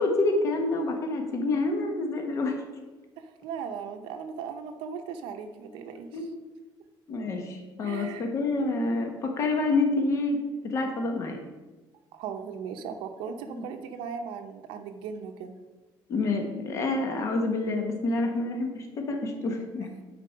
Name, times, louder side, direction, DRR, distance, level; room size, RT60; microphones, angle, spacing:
voice 1, 0.0-2.6 6.1-6.3 7.1-10.4 10.6-11.4 13.6-13.7 16.1-19.9, left 2 dB, 35° left, 3 dB, 1.1 m, -27 dB
voice 2, 3.2-6.3 7.8-8.3 12.1-15.5, right 6 dB, 75° right, 5 dB, 0.7 m, -38 dB
9.0 x 4.4 x 5.6 m, 1.2 s
cardioid pair, 170°, 9 cm